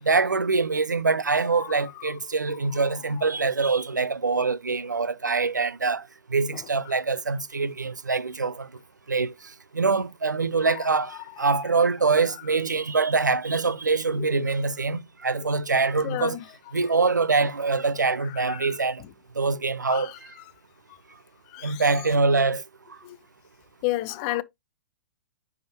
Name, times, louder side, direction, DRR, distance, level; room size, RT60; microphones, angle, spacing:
voice 1, 0.0-8.7 9.1-9.3 9.7-16.4 16.7-19.0 19.4-20.1 21.6-22.6, right 4 dB, 85° right, 0.4 m, -24 dB
voice 2, 1.5-2.1 2.7-2.9 3.2-3.3 6.5-6.6 6.9-7.0 10.6-11.6 14.2-14.4 15.4-15.5 16.0-16.4 18.2-19.1 19.9-20.2 20.9-21.0 21.5-21.8 23.0-23.2 23.8-24.4, left 17 dB, 35° left, 0.4 m, -34 dB
10.0 x 3.5 x 2.8 m
figure-of-eight pair, 105°, 9 cm